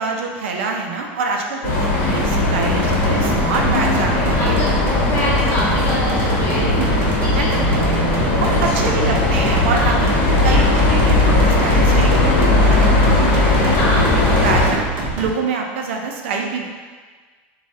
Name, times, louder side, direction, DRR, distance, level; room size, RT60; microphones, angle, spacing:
voice 1, 0.0-4.6 6.4-6.9 7.4-7.6 8.4-10.2 10.4-13.8 14.1-16.7, right 4 dB, 90° right, 2 dB, 0.4 m, -25 dB
sound 1, 1.6-14.7, left 2 dB, 65° left, 0.9 m, -17 dB
sound 2, 2.2-15.3, right 2 dB, 40° right, 0.6 m, -26 dB
voice 2, 3.6-6.9 7.2-7.5 7.8-8.6 9.7-10.0 13.8-14.1, left 1 dB, 35° left, -6 dB, 0.8 m, -27 dB
3.2 x 2.2 x 2.6 m, 1.5 s
supercardioid pair, 145°, 6 cm